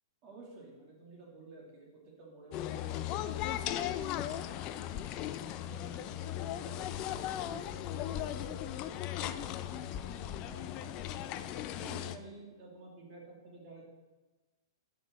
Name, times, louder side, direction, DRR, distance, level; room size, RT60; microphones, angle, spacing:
voice 1, 0.2-5.2 5.6-8.7 9.1-13.8, right 3 dB, 35° right, -3 dB, 2.4 m, -52 dB
sound 1, 2.5-12.2, left 12 dB, 35° left, 0.4 m, -37 dB
5.9 x 4.8 x 6.1 m, 1.2 s
hypercardioid pair, 125°, 2 cm